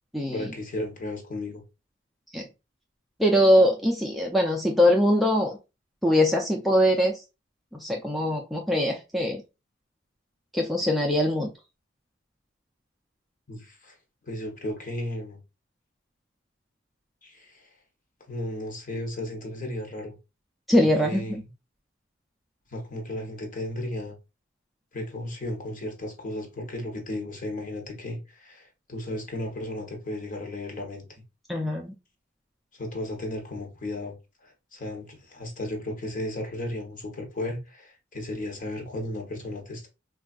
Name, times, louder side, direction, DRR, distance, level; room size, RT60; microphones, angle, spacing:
voice 1, 0.3-1.6 13.5-13.9 14.2-15.4 17.2-17.7 18.3-20.2 20.8-21.4 22.7-24.2 24.9-31.0 32.7-34.2 34.4-39.9, left 1 dB, 40° left, 0.8 m, -34 dB
voice 2, 3.2-5.6 6.0-7.1 7.8-9.4 10.5-11.5 20.7-21.3 31.5-31.9, equal, ahead, 0.3 m, -22 dB
3.4 x 2.3 x 2.3 m
head